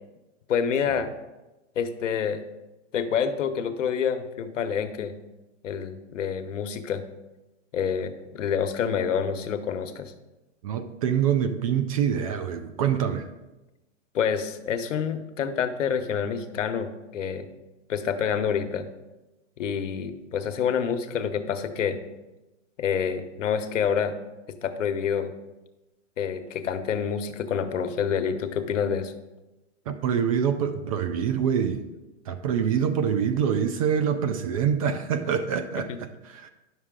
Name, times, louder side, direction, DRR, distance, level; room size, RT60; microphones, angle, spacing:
voice 1, 0.5-1.1 1.8-2.4 2.9-5.1 5.6-7.0 7.7-10.1 14.1-17.5 17.9-18.9 19.6-22.0 22.8-24.1 24.6-25.3 26.2-29.1, left 7 dB, 80° left, 8 dB, 1.0 m, -27 dB
voice 2, 10.6-13.3 29.9-31.9 32.3-36.5, right 8 dB, 30° right, 10 dB, 0.4 m, -25 dB
10.5 x 6.5 x 3.7 m, 1.1 s
hypercardioid pair, 145°, 37 cm